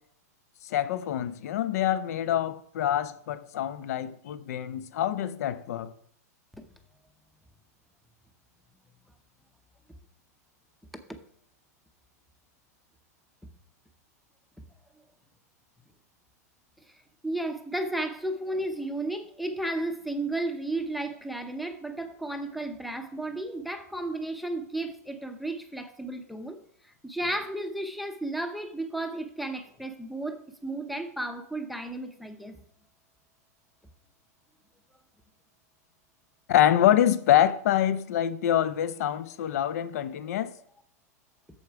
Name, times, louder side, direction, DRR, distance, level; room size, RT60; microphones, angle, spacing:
voice 1, 0.6-5.9 36.5-40.5, left 11 dB, 65° left, 0.7 m, -25 dB
voice 2, 16.8-32.6, right 2 dB, ahead, 0.7 m, -33 dB
8.3 x 7.1 x 4.7 m
supercardioid pair, 150°, 9 cm